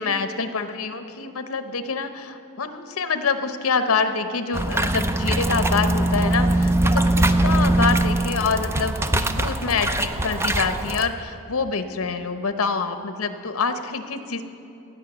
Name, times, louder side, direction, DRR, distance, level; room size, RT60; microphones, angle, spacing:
voice 1, 0.0-14.4, left 4 dB, 85° left, 9 dB, 0.8 m, -26 dB
sound 1, 4.5-11.1, right 1 dB, 10° right, 0.4 m, -21 dB
16.5 x 5.6 x 8.0 m, 2.9 s
head